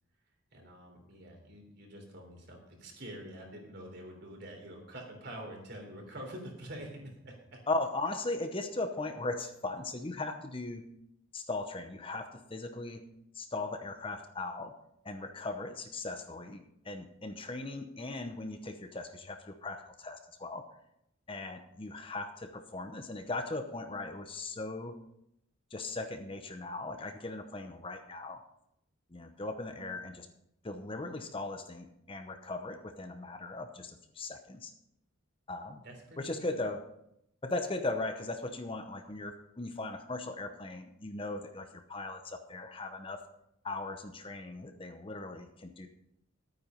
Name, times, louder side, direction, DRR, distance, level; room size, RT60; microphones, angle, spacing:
voice 1, 0.5-7.6 35.8-36.5, right 1 dB, 50° right, 1 dB, 3.4 m, -46 dB
voice 2, 7.7-10.8 11.3-13.0 13.3-14.7 15.0-20.6 21.3-24.9 25.7-28.4 29.1-30.3 30.6-34.7 35.5-35.8 36.2-36.8 37.4-43.2 43.6-45.9, left 2 dB, 25° left, 7 dB, 0.8 m, -38 dB
12.0 x 9.2 x 5.3 m, 0.79 s
head